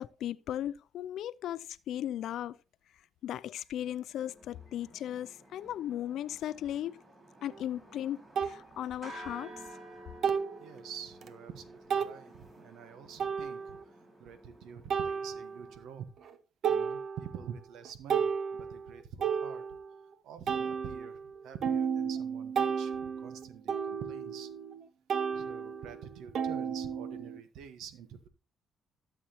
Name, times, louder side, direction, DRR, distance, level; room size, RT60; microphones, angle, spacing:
voice 1, 0.0-2.6 3.2-7.0 7.4-9.5, left 11 dB, 75° left, 0.3 m, -37 dB
sound 1, 4.1-15.8, right 1 dB, 35° right, 4.9 m, -52 dB
sound 2, 7.5-7.6 8.4-8.6 10.2-10.6 11.2-11.3 11.9-12.2 13.2-13.8 14.9-15.7 16.2-16.3 16.6-17.5 17.8-20.0 20.5-24.8 25.1-27.4, right 7 dB, 65° right, 0.9 m, -33 dB
voice 2, 10.6-16.1 16.7-19.6 20.2-24.5 25.3-28.3, right 8 dB, 85° right, 1.2 m, -47 dB
13.0 x 7.4 x 2.9 m
cardioid pair, 90°, 0 cm